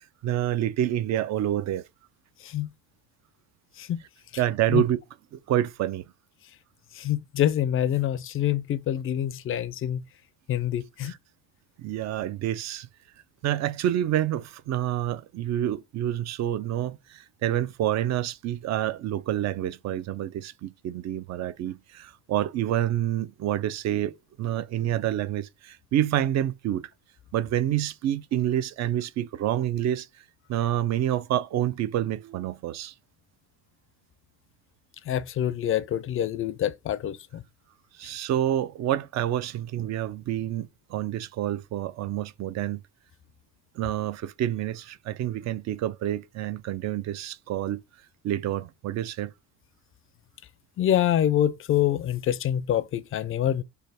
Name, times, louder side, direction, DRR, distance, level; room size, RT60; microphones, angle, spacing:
voice 1, 0.0-1.8 4.4-5.0 5.3-6.0 11.0-11.2 11.8-12.9 13.4-24.1 24.4-26.9 27.3-30.1 30.5-32.9 38.0-42.8 43.8-47.8 48.2-49.3, right 12 dB, 50° right, 0.4 m, -28 dB
voice 2, 7.0-10.0 10.5-11.1 35.1-37.4 50.8-53.6, left 11 dB, 40° left, 0.4 m, -26 dB
3.3 x 2.2 x 4.0 m
cardioid pair, 110°, 35 cm